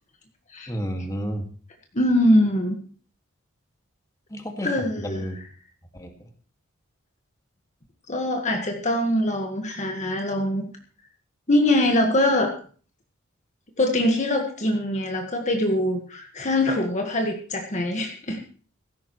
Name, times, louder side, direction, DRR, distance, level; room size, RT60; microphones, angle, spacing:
voice 1, 0.7-1.5 4.3-5.4 5.9-6.1, equal, 15° left, 4 dB, 2.0 m, -31 dB
voice 2, 1.9-2.8 4.6-5.3 8.1-10.7 11.5-12.5 13.8-18.4, left 1 dB, 35° left, 3 dB, 1.7 m, -23 dB
16.5 x 14.0 x 3.2 m, 0.41 s
head